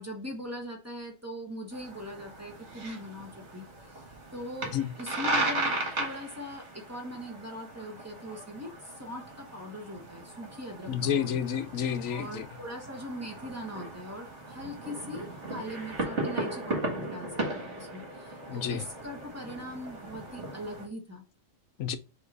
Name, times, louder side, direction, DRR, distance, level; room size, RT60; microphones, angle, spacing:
voice 1, 0.0-3.7 4.3-11.4 12.0-21.2, equal, 15° right, 1.1 m, -41 dB
sound 1, 1.7-20.9, right 2 dB, 60° right, 2.1 m, -37 dB
voice 2, 10.9-12.5 18.5-18.8 21.8-22.0, left 8 dB, 85° left, 1.1 m, -30 dB
5.9 x 3.0 x 5.3 m
omnidirectional pair, 1.3 m